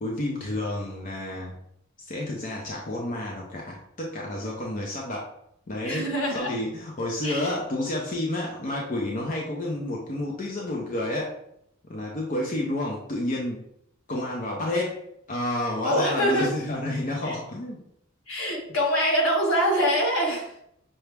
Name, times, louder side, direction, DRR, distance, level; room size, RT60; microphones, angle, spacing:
voice 1, 0.0-1.6 2.1-5.3 5.7-11.3 11.9-13.6 14.1-15.0 15.3-17.8, left 1 dB, 40° left, -2 dB, 0.6 m, -30 dB
voice 2, 5.8-6.5 7.2-7.5 15.8-16.5 17.2-17.3 18.3-20.5, equal, 80° left, -1 dB, 1.4 m, -24 dB
5.8 x 2.1 x 3.3 m, 0.74 s
head